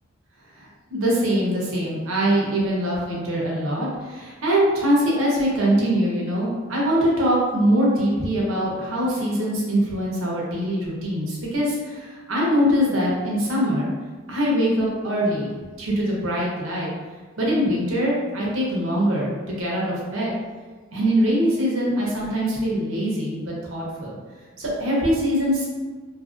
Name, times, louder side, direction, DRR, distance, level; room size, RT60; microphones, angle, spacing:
voice 1, 0.6-13.9 14.3-15.5 15.8-16.9 17.4-20.3 20.9-24.2 24.6-25.7, equal, 75° right, -4 dB, 0.8 m, -23 dB
2.8 x 2.6 x 2.5 m, 1.4 s
head